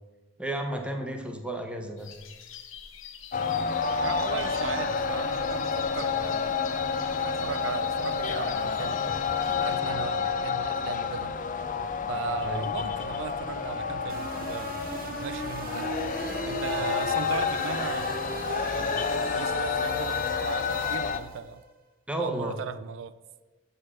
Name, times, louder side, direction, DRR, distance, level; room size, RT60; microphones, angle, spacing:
voice 1, 0.4-2.1 12.4-12.7 22.1-22.6, right 1 dB, 5° right, 1.0 m, -32 dB
sound 1, 2.0-9.8, left 8 dB, 80° left, 0.9 m, -47 dB
sound 2, 3.3-21.2, left 5 dB, 40° left, 0.5 m, -29 dB
voice 2, 4.0-6.6 7.2-9.0 9.6-11.3 12.1-14.8 15.2-16.1 16.5-18.3 18.7-21.6 22.2-23.2, right 6 dB, 80° right, 0.4 m, -37 dB
sound 3, 14.1-21.5, right 2 dB, 50° right, 1.0 m, -38 dB
6.6 x 6.5 x 7.3 m
head